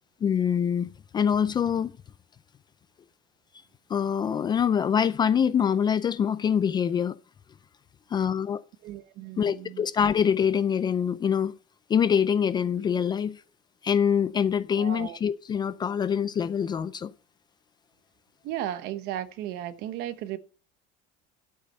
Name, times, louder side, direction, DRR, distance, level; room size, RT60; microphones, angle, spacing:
voice 1, 0.2-1.9 3.9-7.2 8.1-8.6 9.4-11.5 11.9-13.4 13.8-17.1, left 7 dB, 20° left, 0.5 m, -25 dB
voice 2, 8.8-9.8 14.7-15.2 18.4-20.4, right 12 dB, 60° right, 1.1 m, -35 dB
12.0 x 8.6 x 5.4 m
cardioid pair, 155°, 19 cm